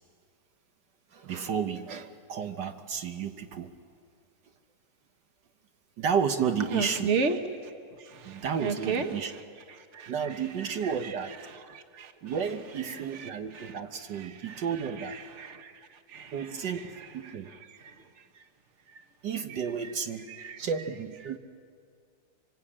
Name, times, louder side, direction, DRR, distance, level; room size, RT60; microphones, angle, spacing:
voice 1, 1.1-3.7 6.0-7.1 8.2-9.3 10.1-11.4 12.2-15.2 16.3-17.5 19.2-20.3 20.6-21.4, right 7 dB, 75° right, 1.7 m, -32 dB
voice 2, 6.7-7.4 7.6-7.7 8.0-9.1 9.9-10.1 11.7-12.1 13.2-13.3 13.5-13.7 14.2-14.6 15.4-15.7 16.1-16.7 17.7-17.9 18.9-19.0 20.3-20.6, right 5 dB, 40° right, 1.6 m, -33 dB
26.0 x 25.0 x 8.7 m
omnidirectional pair, 1.9 m